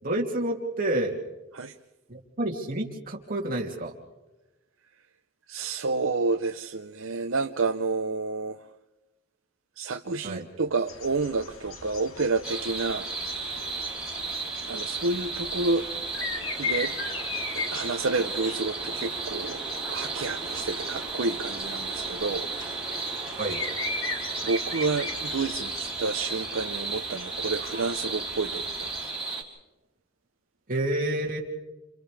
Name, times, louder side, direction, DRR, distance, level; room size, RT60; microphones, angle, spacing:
voice 1, 0.0-1.2 2.1-3.9 10.2-10.5 23.4-23.6 30.7-31.4, right 1 dB, 45° right, 2.9 m, -29 dB
voice 2, 5.5-8.6 9.8-13.1 14.7-15.8 16.6-16.9 17.6-19.6 19.9-22.5 24.4-29.1, right 3 dB, 70° right, 0.7 m, -29 dB
sound 1, 10.9-29.1, left 4 dB, 80° left, 2.1 m, -39 dB
sound 2, 12.4-29.4, right 3 dB, 5° right, 4.2 m, -34 dB
30.0 x 29.0 x 3.4 m
head